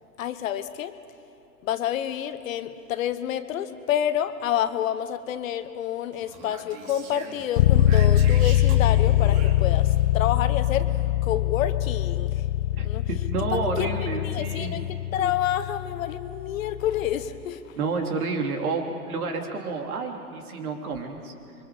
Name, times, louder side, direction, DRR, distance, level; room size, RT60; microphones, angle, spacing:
voice 1, 0.2-0.9 1.6-11.0 11.2-12.4 12.8-13.1 13.5-17.8, left 10 dB, 55° left, 11 dB, 1.2 m, -29 dB
Speech, 6.1-10.0, right 4 dB, 40° right, 3.0 m, -42 dB
sound 1, 7.6-17.3, left 12 dB, 40° left, 0.8 m, -23 dB
voice 2, 12.7-14.8 17.8-21.3, right 4 dB, 60° right, 3 dB, 3.3 m, -30 dB
27.0 x 24.0 x 5.1 m, 2.9 s
hypercardioid pair, 120°, 49 cm